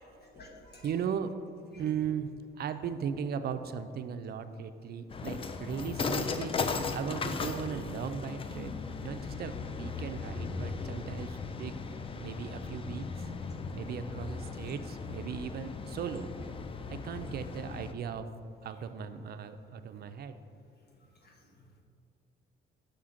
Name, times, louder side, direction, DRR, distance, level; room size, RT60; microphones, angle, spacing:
voice 1, 0.2-0.9 1.7-1.8 8.6-8.9 13.9-14.0, left 4 dB, 55° left, 0 dB, 1.2 m, -49 dB
voice 2, 0.8-1.3 1.7-6.5 6.9-11.7 12.2-13.1 13.7-16.3 16.9-18.3 18.6-20.4, right 7 dB, 55° right, 10 dB, 0.4 m, -37 dB
sound 1, 5.1-17.9, left 4 dB, 30° left, 0.4 m, -37 dB
5.7 x 5.0 x 3.7 m, 2.4 s
cardioid pair, 90°, 20 cm